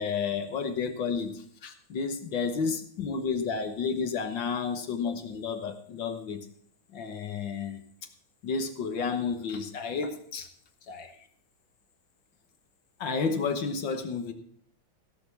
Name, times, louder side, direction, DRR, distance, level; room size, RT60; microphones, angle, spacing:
voice 1, 0.0-6.5 6.9-7.8 8.4-10.5 10.9-11.2 13.0-14.3, left 5 dB, 60° left, 7 dB, 1.7 m, -31 dB
16.5 x 6.1 x 7.0 m, 0.63 s
omnidirectional pair, 2.4 m